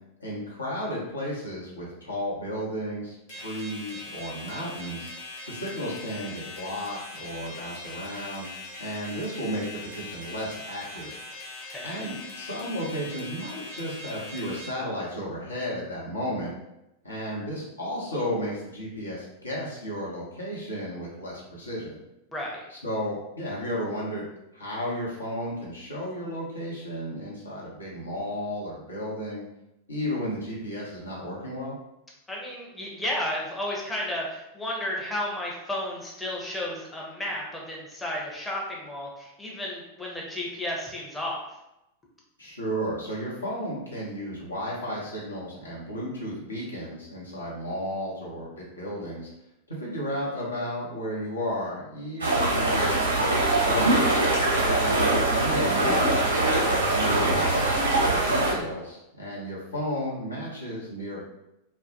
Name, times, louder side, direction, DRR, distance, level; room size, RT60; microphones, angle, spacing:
voice 1, 0.2-5.1 5.5-8.5 8.8-11.1 11.4-11.5 11.8-16.5 17.0-22.0 22.7-29.4 29.9-31.7 42.4-49.3 49.7-54.0 54.6-61.2, equal, 80° left, -5 dB, 0.7 m, -33 dB
sound 1, 3.3-14.7, left 2 dB, 45° left, 0.7 m, -41 dB
voice 2, 11.7-12.0 22.3-22.7 32.3-41.5 54.5-54.9, left 1 dB, 10° left, -4 dB, 0.6 m, -33 dB
sound 2, 52.2-58.5, right 2 dB, 75° right, 0.6 m, -23 dB
2.1 x 2.1 x 2.7 m, 0.89 s
figure-of-eight pair, 90°, 0 cm